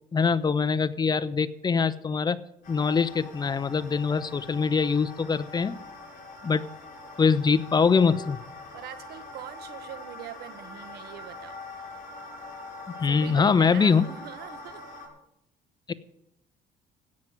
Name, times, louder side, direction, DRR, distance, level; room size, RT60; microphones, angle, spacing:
voice 1, 0.1-2.4 2.7-5.8 6.4-6.6 7.2-8.4 12.9-14.0 15.9-16.0, left 5 dB, 25° left, 14 dB, 0.8 m, -23 dB
sound 1, 2.6-15.1, left 3 dB, 55° left, 6.4 m, -43 dB
voice 2, 8.7-11.6 13.1-14.8, right 11 dB, 70° right, 12 dB, 1.2 m, -42 dB
16.5 x 6.1 x 9.4 m, 0.81 s
cardioid pair, 110°, 17 cm